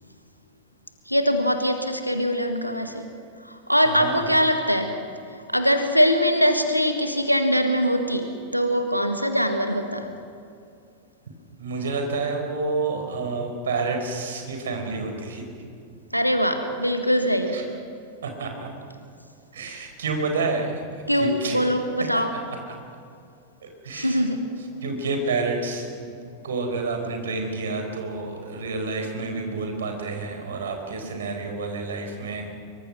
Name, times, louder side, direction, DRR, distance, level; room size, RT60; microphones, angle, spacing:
voice 1, 1.1-3.0 3.4-5.0 5.5-10.1 16.1-17.6 21.1-22.3 23.9-24.4, equal, 90° left, 6 dB, 1.6 m, -22 dB
voice 2, 3.8-4.5 11.6-15.4 17.5-17.6 18.2-18.7 19.5-21.6 22.1-22.2 22.7-22.8 23.8-24.3 24.6-26.1 26.4-32.4, right 3 dB, 65° right, 4 dB, 4.5 m, -29 dB
24.5 x 24.0 x 6.1 m, 2.4 s
figure-of-eight pair, 90°, 0 cm